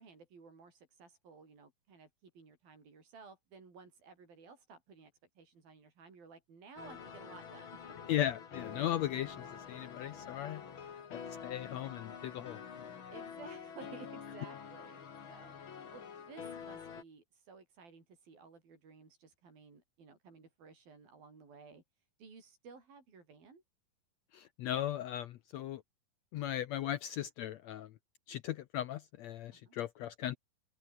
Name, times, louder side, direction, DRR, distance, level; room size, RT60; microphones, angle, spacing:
voice 1, 0.0-7.8 11.1-11.6 13.1-15.0 15.3-21.8 22.2-23.6 29.5-29.8, right 4 dB, 85° right, 8.0 m, -55 dB
sound 1, 6.8-17.0, left 7 dB, 40° left, 2.3 m, -47 dB
voice 2, 8.1-10.6 11.1-12.9 24.3-25.8 26.3-27.9 28.3-30.4, left 12 dB, 80° left, 1.5 m, -37 dB
open air
omnidirectional pair, 4.1 m